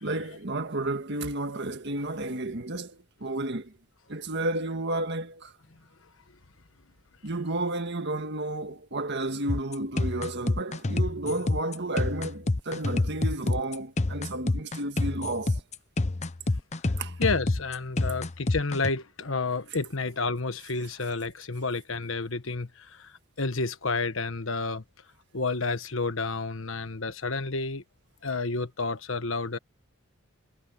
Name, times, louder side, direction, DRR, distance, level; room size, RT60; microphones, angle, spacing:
voice 1, 0.0-3.7 4.1-5.5 7.2-15.6 17.0-17.1, right 2 dB, 55° right, 1.7 m, -32 dB
sound 1, 9.5-18.9, left 2 dB, 35° left, 0.8 m, -28 dB
voice 2, 17.2-24.8 25.3-27.8 28.2-29.6, left 3 dB, 65° left, 1.4 m, -30 dB
head